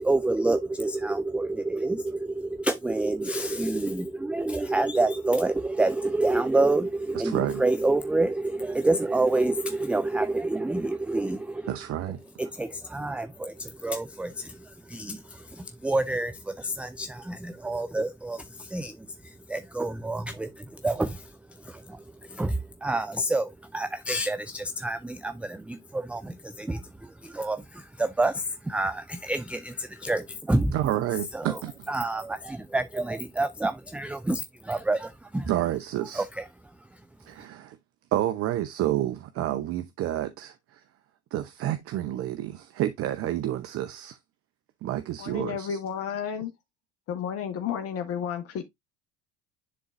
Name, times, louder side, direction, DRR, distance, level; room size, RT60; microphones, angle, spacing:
voice 1, 0.0-11.7 12.4-19.0 19.5-21.3 21.6-22.0 22.3-30.8 31.3-31.6 31.9-35.5 36.1-36.4, right 2 dB, 5° right, 0.4 m, -28 dB
voice 2, 7.1-7.6 11.7-12.2 30.7-31.9 35.5-36.2 37.2-37.8 38.1-40.8 41.3-44.2 44.8-45.8, right 13 dB, 45° right, 0.7 m, -29 dB
voice 3, 45.2-46.5 47.1-48.6, left 8 dB, 45° left, 1.3 m, -32 dB
10.0 x 3.8 x 2.5 m
hypercardioid pair, 70°, 32 cm